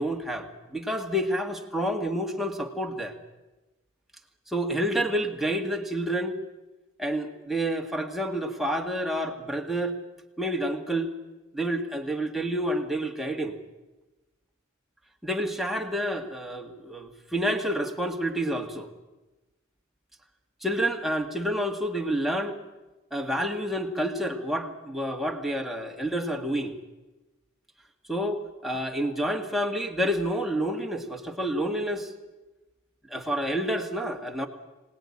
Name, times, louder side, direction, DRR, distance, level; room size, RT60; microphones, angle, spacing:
voice 1, 0.0-3.1 4.5-6.4 7.0-10.0 10.4-11.1 11.5-13.5 15.2-18.9 20.6-22.6 23.1-26.8 28.1-32.1 33.1-34.5, equal, ahead, 2 dB, 2.0 m, -29 dB
25.0 x 19.0 x 10.0 m, 1.1 s
head